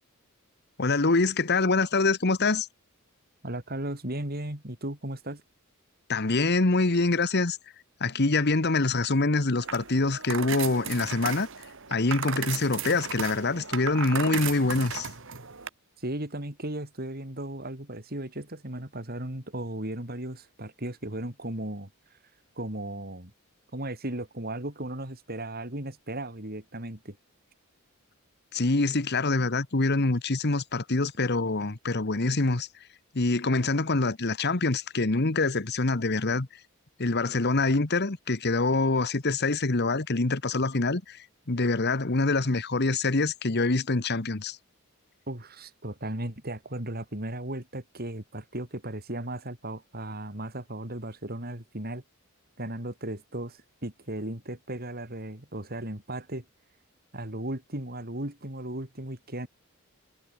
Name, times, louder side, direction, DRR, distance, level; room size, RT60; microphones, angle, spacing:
voice 1, 0.8-2.7 6.1-7.6 8.0-11.5 11.9-15.1 28.5-32.7 33.1-36.5 37.0-41.2 41.5-44.6, left 3 dB, 50° left, 1.3 m, -25 dB
voice 2, 3.4-5.4 16.0-21.9 22.6-23.3 23.7-27.2 45.3-52.0 52.6-56.4 57.1-59.5, right 1 dB, 45° right, 4.2 m, -36 dB
sound 1, 9.6-15.7, right 7 dB, 60° right, 2.4 m, -35 dB
head